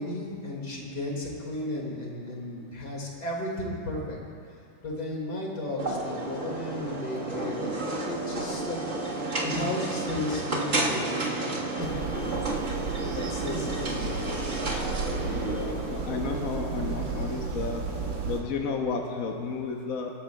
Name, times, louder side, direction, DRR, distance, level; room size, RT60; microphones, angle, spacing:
voice 1, 0.0-4.2 4.8-8.8 9.4-12.4 12.7-14.2, left 1 dB, 75° left, -2 dB, 2.7 m, -34 dB
sound 1, 5.8-18.4, right 2 dB, 45° right, 1.8 m, -32 dB
sound 2, 11.8-18.4, right 5 dB, 70° right, 1.5 m, -34 dB
voice 2, 15.2-17.8 18.3-20.1, left 4 dB, 60° left, 1 dB, 1.2 m, -32 dB
24.0 x 13.0 x 2.3 m, 2.4 s
omnidirectional pair, 1.8 m